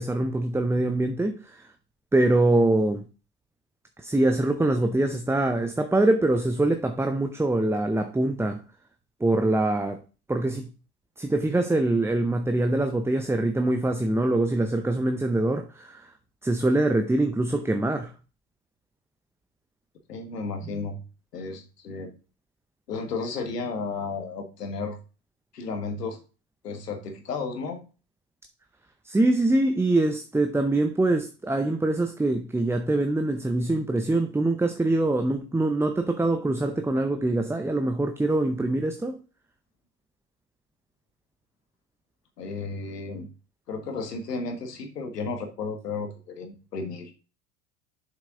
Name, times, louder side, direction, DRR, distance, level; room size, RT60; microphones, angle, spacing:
voice 1, 0.0-1.7 2.1-3.0 4.0-8.6 9.2-10.0 10.3-10.7 11.2-16.1 16.4-18.1 20.7-20.9 29.0-39.2, right 2 dB, 5° right, 0.6 m, -24 dB
voice 2, 20.1-21.0 21.3-22.1 22.9-25.0 25.5-26.2 26.6-27.8 42.4-43.3 43.7-47.1, left 4 dB, 85° left, 1.7 m, -33 dB
7.3 x 5.6 x 3.8 m
hypercardioid pair, 75°, 46 cm